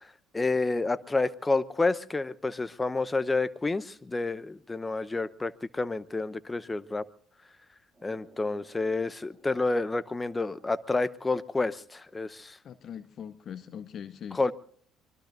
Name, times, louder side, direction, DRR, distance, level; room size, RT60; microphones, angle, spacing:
voice 1, 0.3-7.0 8.0-12.6 14.4-14.5, left 3 dB, 20° left, 16 dB, 0.8 m, -29 dB
sound 1, 7.9-12.0, right 1 dB, 25° right, 7.8 m, -61 dB
voice 2, 12.6-14.4, left 8 dB, 50° left, 14 dB, 0.6 m, -41 dB
24.5 x 21.5 x 2.6 m, 0.62 s
hypercardioid pair, 60°, 0 cm